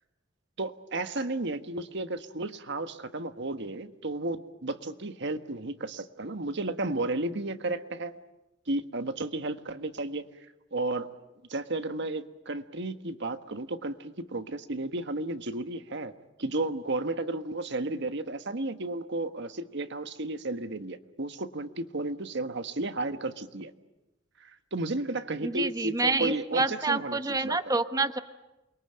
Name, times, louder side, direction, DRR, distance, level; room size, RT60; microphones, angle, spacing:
voice 1, 0.6-8.2 8.7-11.1 11.5-16.1 16.4-23.7 24.4-27.6, right 2 dB, 65° right, 9 dB, 1.4 m, -33 dB
voice 2, 25.4-28.2, right 3 dB, 20° right, 9 dB, 0.9 m, -28 dB
28.5 x 22.5 x 9.0 m, 1.0 s
head